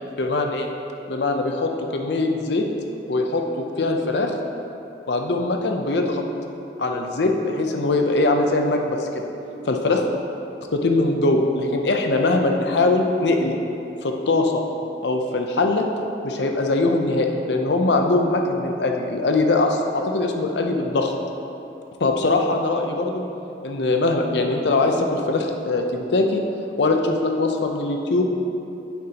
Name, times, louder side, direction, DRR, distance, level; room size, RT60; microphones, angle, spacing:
voice 1, 0.2-0.7 1.1-2.6 3.1-4.3 5.1-6.2 6.8-9.3 9.7-10.0 10.7-13.6 14.0-14.6 15.0-15.9 16.2-21.1 22.0-23.2 23.6-26.4 26.8-28.2, left 2 dB, 80° left, 3 dB, 0.6 m, -21 dB
8.8 x 7.1 x 2.9 m, 2.9 s
head